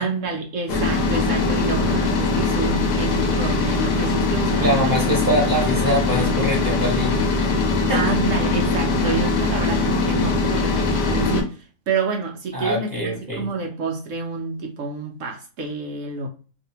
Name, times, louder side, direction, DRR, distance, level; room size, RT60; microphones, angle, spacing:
voice 1, 0.0-5.0 7.9-16.3, right 4 dB, 70° right, 0.7 m, -28 dB
sound 1, 0.7-11.4, left 3 dB, 85° left, 1.3 m, -21 dB
voice 2, 4.6-7.5 7.9-8.0 12.5-13.5, equal, 15° right, 0.9 m, -23 dB
2.7 x 2.6 x 2.7 m
omnidirectional pair, 1.7 m